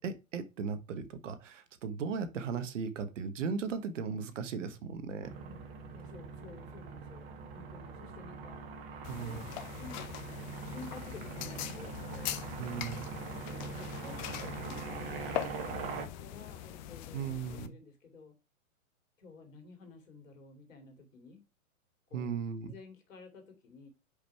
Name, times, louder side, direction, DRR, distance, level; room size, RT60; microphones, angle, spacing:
voice 1, 0.0-5.3 9.1-9.4 12.6-13.1 17.1-17.7 22.1-22.7, right 6 dB, 60° right, 1.2 m, -37 dB
sound 1, 5.2-16.1, right 4 dB, 45° right, 1.6 m, -43 dB
voice 2, 5.9-8.8 9.2-10.0 10.6-12.4 13.3-18.3 19.2-21.5 22.1-22.3 22.7-23.9, left 4 dB, 65° left, 2.5 m, -52 dB
sound 2, 9.0-17.7, left 12 dB, 35° left, 0.6 m, -42 dB
5.1 x 5.0 x 4.5 m
hypercardioid pair, 115°, 41 cm